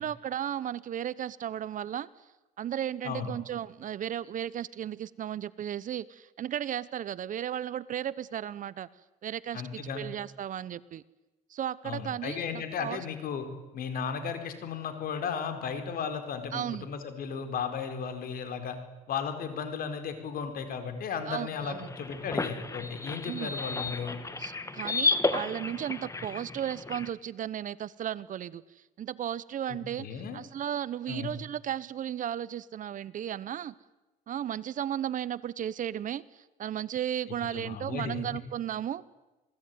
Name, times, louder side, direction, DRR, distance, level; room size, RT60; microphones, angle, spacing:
voice 1, 0.0-2.1 2.6-8.9 9.2-11.0 11.5-13.0 16.5-16.9 21.3-21.9 23.2-23.5 24.4-33.7 34.3-39.0, right 10 dB, 50° right, 19 dB, 0.9 m, -35 dB
voice 2, 9.5-10.0 11.8-13.4 13.7-18.8 19.1-24.2 29.7-30.4 31.1-31.3 37.5-38.2, left 6 dB, 60° left, 8 dB, 4.7 m, -35 dB
sound 1, 21.6-27.1, left 3 dB, 20° left, 1.7 m, -32 dB
27.5 x 19.0 x 9.5 m, 1.1 s
cardioid pair, 110°, 17 cm